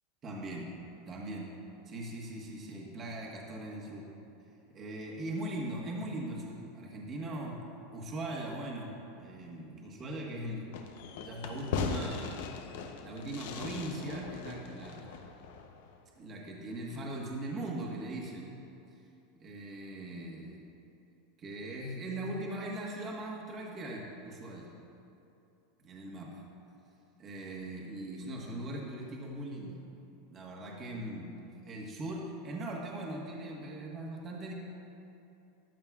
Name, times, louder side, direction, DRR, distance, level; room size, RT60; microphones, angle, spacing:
voice 1, 0.2-0.8 1.1-1.5 1.9-4.1 4.7-7.6 7.9-10.7 11.2-12.4 13.0-15.2 16.2-18.5 19.4-20.6 21.4-24.7 25.8-26.4 27.2-29.8 30.3-31.3 31.6-34.5, right 1 dB, 25° right, -2 dB, 1.4 m, -40 dB
Fireworks, 10.7-16.0, left 6 dB, 70° left, 0.7 m, -39 dB
14.0 x 10.5 x 2.4 m, 2.8 s
supercardioid pair, 160°, 0 cm